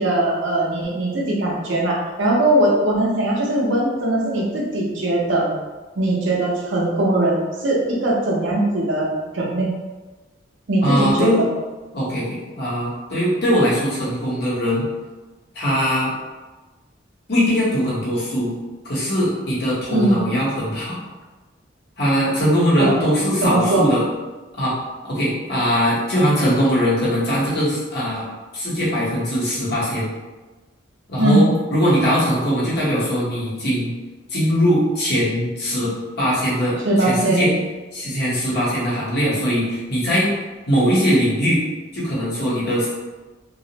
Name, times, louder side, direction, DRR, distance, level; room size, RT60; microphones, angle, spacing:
voice 1, 0.0-5.5 6.0-9.1 9.3-9.7 10.7-11.5 19.9-20.3 22.8-23.0 23.4-23.9 31.2-31.5 36.8-37.6, right 1 dB, 75° right, -3 dB, 0.6 m, -20 dB
voice 2, 10.8-11.4 11.9-14.8 15.5-16.1 17.3-18.5 18.8-21.0 22.0-24.0 24.5-24.7 25.1-28.3 28.5-30.1 31.1-33.9 34.3-37.5 37.9-40.3 40.7-41.6 41.9-42.9, equal, 55° left, -8 dB, 0.9 m, -21 dB
2.3 x 2.0 x 2.8 m, 1.2 s
head